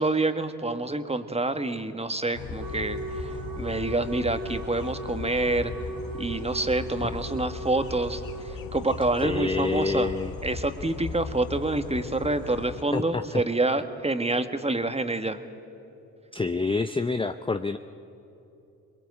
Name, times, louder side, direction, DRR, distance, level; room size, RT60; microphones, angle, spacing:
voice 1, 0.0-3.3 3.6-5.7 6.2-10.1 10.4-15.4, right 2 dB, 15° right, 8 dB, 1.6 m, -27 dB
sound 1, 2.3-12.8, left 5 dB, 55° left, 1.4 m, -38 dB
Wind instrument woodwind instrument, 2.6-8.6, right 2 dB, 70° right, 1.7 m, -38 dB
voice 2, 9.2-10.3 12.9-13.4 16.3-17.8, left 3 dB, 15° left, 10 dB, 0.6 m, -27 dB
22.0 x 21.5 x 8.3 m, 2.8 s
hypercardioid pair, 50°, 42 cm